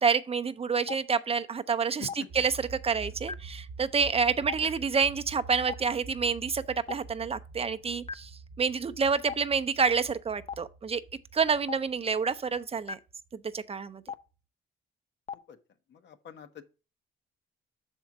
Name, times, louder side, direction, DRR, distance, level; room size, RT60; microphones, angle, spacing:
voice 1, 0.0-2.1 2.3-2.5 2.8-6.6 6.9-8.3 8.6-11.0 11.3-13.0 13.3-14.0, right 5 dB, 30° right, 0.5 m, -28 dB
Stream, 0.9-1.0 2.1-2.2 3.3-3.4 4.5-4.6 5.7-5.8 6.9-7.0 8.1-8.2 9.3-9.4 10.5-10.6 11.7-11.8 12.9-13.0 14.1-14.2 15.3-15.4, left 6 dB, 30° left, 0.5 m, -34 dB
sound 1, 2.3-13.6, right 4 dB, 60° right, 0.9 m, -47 dB
voice 2, 15.9-16.6, left 8 dB, 65° left, 0.9 m, -47 dB
6.3 x 4.4 x 5.7 m
cardioid pair, 90°, 20 cm